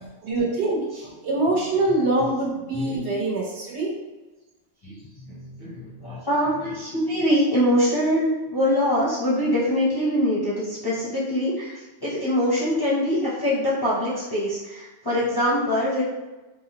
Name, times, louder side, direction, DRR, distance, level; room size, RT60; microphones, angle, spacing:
voice 1, 0.2-4.0, right 2 dB, 70° right, -3 dB, 1.1 m, -24 dB
voice 2, 4.8-16.0, equal, 30° left, -8 dB, 0.5 m, -24 dB
3.4 x 2.0 x 2.8 m, 1.1 s
omnidirectional pair, 1.2 m